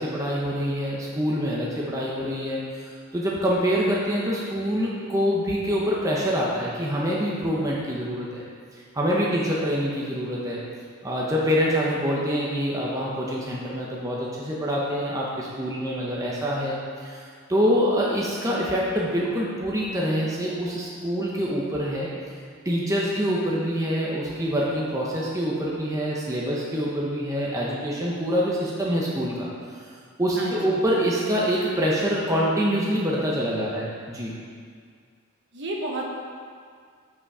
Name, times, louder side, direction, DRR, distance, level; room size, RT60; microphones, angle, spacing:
voice 1, 0.0-8.4 8.7-10.6 11.0-22.4 22.6-29.5 29.7-29.8 30.2-34.3, equal, 15° right, -5 dB, 0.8 m, -25 dB
voice 2, 30.3-30.8 35.5-36.1, right 1 dB, 55° right, -2 dB, 1.2 m, -31 dB
8.1 x 5.8 x 4.8 m, 2.1 s
head